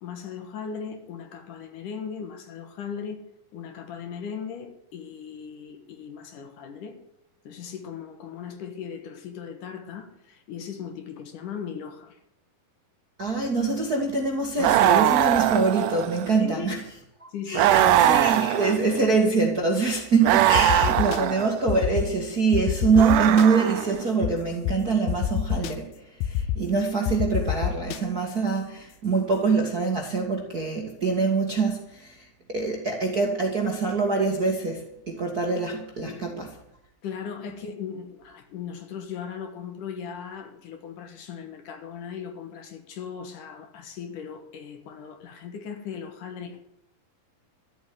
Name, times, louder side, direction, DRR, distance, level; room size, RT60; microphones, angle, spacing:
voice 1, 0.0-3.3 3.5-7.0 7.4-12.2 16.4-16.7 17.3-18.0 36.0-36.4 37.0-46.7, left 7 dB, 65° left, 2.8 m, -38 dB
voice 2, 13.2-16.8 17.2-25.9 26.2-36.5, right 4 dB, 40° right, 1.4 m, -24 dB
sound 1, 14.6-16.4 17.5-19.1 20.2-21.6 22.9-24.0, right 12 dB, 75° right, 2.0 m, -21 dB
sound 2, 20.5-21.2 21.7-22.1 22.5-23.5 24.2-24.3 24.6-24.7 25.1-25.7 26.2-26.6 27.1-28.0, left 11 dB, 85° left, 2.6 m, -26 dB
13.5 x 8.2 x 9.6 m
omnidirectional pair, 4.2 m